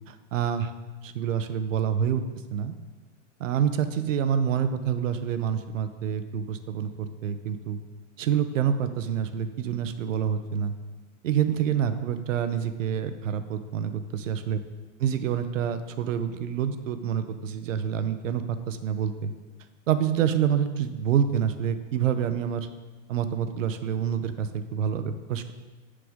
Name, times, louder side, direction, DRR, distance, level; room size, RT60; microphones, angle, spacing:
voice 1, 0.1-0.7 1.0-2.2 2.5-2.7 3.4-7.8 8.2-10.7 11.2-14.6 15.0-19.3 19.9-22.7 23.1-25.5, right 8 dB, 85° right, 11 dB, 0.8 m, -27 dB
8.9 x 6.7 x 3.6 m, 1.2 s
supercardioid pair, 155°, 37 cm